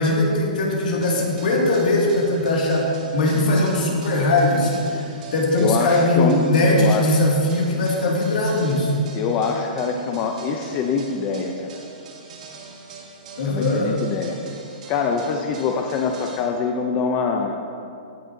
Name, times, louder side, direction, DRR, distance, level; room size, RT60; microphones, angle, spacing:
voice 1, 0.0-8.9 13.4-13.9, left 1 dB, 65° left, -2 dB, 2.1 m, -20 dB
sound 1, 1.0-16.4, right 4 dB, 50° right, 1.6 m, -42 dB
voice 2, 5.6-7.2 9.1-11.7 13.5-14.4 14.9-17.6, left 5 dB, 25° left, 3 dB, 0.4 m, -24 dB
16.0 x 6.3 x 2.7 m, 2.4 s
hypercardioid pair, 160°, 5 cm